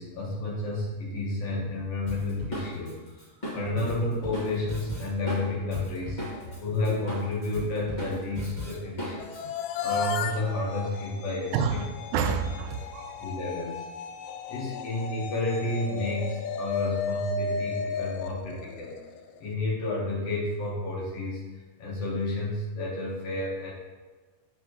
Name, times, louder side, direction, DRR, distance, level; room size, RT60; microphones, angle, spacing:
voice 1, 0.0-2.9 3.5-6.2 6.6-9.4 9.8-11.8 12.1-12.3 13.2-13.8 14.5-19.0 19.4-21.4 21.8-23.7, left 2 dB, 60° left, -4 dB, 1.8 m, -31 dB
Drum kit, 2.1-6.6 6.8-9.4, equal, 30° left, 0.7 m, -37 dB
sound 1, 9.2-19.4, left 4 dB, 80° left, 2.0 m, -34 dB
voice 2, 11.5-13.3, right 6 dB, 85° right, 8 dB, 2.4 m, -30 dB
7.0 x 5.6 x 3.0 m, 1.3 s
omnidirectional pair, 4.1 m